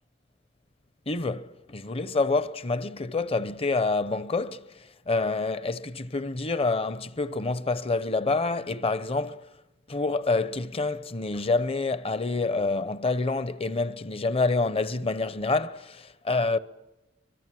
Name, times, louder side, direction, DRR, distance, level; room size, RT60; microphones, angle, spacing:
voice 1, 1.1-9.5 9.9-16.6, left 3 dB, 30° left, 0.8 m, -27 dB
24.5 x 22.0 x 7.6 m
head